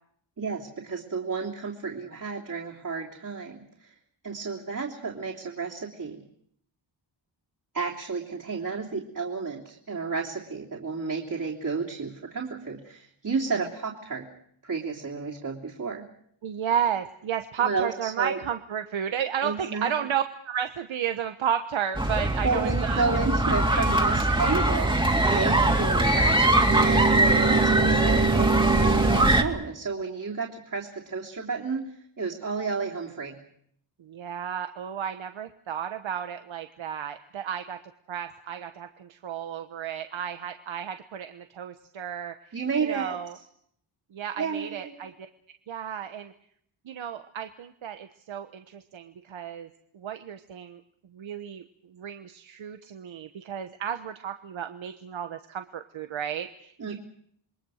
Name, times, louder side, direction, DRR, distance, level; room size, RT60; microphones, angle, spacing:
voice 1, 0.4-3.9 4.2-6.2 7.7-14.3 14.6-16.0 17.6-18.4 19.4-19.9 22.4-33.4 42.5-43.2 44.4-45.0 56.8-57.0, right 4 dB, 45° right, -3 dB, 3.4 m, -31 dB
voice 2, 16.4-23.0 23.6-23.9 25.6-25.9 34.0-37.8 38.1-42.3 42.8-43.4 44.1-45.1 45.7-46.3 46.9-49.7 49.9-50.8 51.1-51.6 51.9-56.9, right 8 dB, 80° right, 8 dB, 1.2 m, -32 dB
sound 1, 21.9-29.4, right 1 dB, 10° right, 2.5 m, -22 dB
sound 2, 26.7-29.4, right 4 dB, 25° right, 0.9 m, -25 dB
28.0 x 22.0 x 6.5 m, 0.68 s
wide cardioid pair, 100°, 46 cm